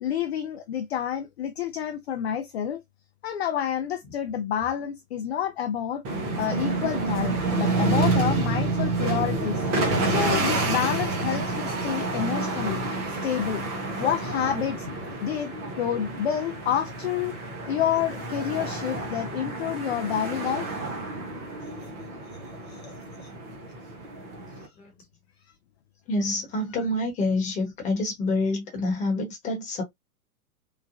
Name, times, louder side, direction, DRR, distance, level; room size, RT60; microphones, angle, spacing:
voice 1, 0.0-2.8 3.2-6.0 6.4-9.6 10.0-12.8 13.1-13.6 14.0-14.9 15.2-17.3 17.6-20.7 22.6-22.9 23.2-23.3 24.6-24.7, left 9 dB, 45° left, 0.4 m, -29 dB
sound 1, 6.0-24.7, right 3 dB, 15° right, 0.4 m, -29 dB
voice 2, 26.1-29.8, left 2 dB, 15° left, 1.0 m, -27 dB
3.0 x 2.2 x 2.5 m
figure-of-eight pair, 110°, 45 cm